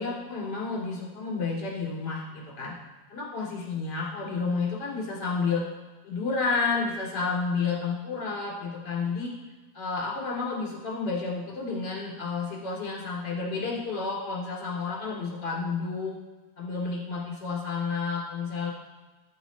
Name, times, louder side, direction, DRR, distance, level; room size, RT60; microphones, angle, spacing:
voice 1, 0.0-2.7 3.1-5.6 6.0-9.3 9.7-16.1 16.6-18.7, left 4 dB, 35° left, -4 dB, 2.2 m, -30 dB
9.3 x 9.3 x 4.1 m, 1.3 s
omnidirectional pair, 4.9 m